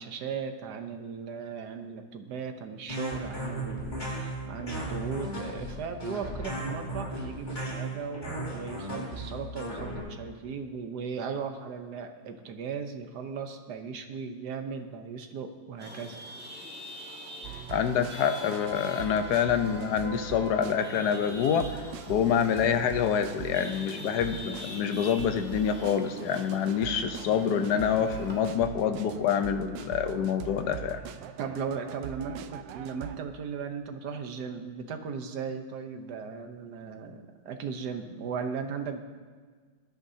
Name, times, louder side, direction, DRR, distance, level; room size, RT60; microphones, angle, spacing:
voice 1, 0.0-16.2 31.4-39.0, right 6 dB, 65° right, 6 dB, 1.5 m, -37 dB
sound 1, 2.9-10.0, right 1 dB, 25° left, 3.2 m, -35 dB
Chatter / Vehicle horn car horn honking / Traffic noise roadway noise, 15.8-28.4, left 1 dB, 5° right, 1.6 m, -44 dB
sound 2, 17.4-33.2, right 10 dB, 85° right, 1.3 m, -42 dB
voice 2, 17.7-31.0, left 8 dB, 65° left, 8 dB, 1.3 m, -27 dB
21.0 x 10.5 x 2.8 m, 1.5 s
omnidirectional pair, 2.0 m